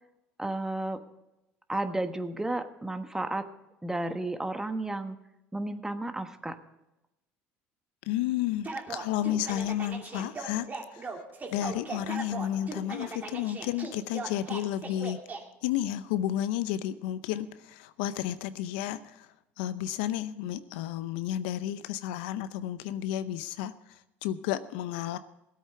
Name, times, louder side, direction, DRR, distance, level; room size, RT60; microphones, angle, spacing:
voice 1, 0.4-1.0 1.7-3.5 3.8-5.2 5.5-6.6, right 2 dB, 10° right, 8 dB, 1.3 m, -32 dB
voice 2, 8.1-11.2 11.5-15.2 15.6-19.3 19.6-25.2, left 12 dB, 85° left, 13 dB, 0.7 m, -32 dB
sound 1, 8.6-15.4, right 4 dB, 30° right, 2.6 m, -38 dB
16.5 x 8.6 x 5.7 m, 0.93 s
supercardioid pair, 85°, 5 cm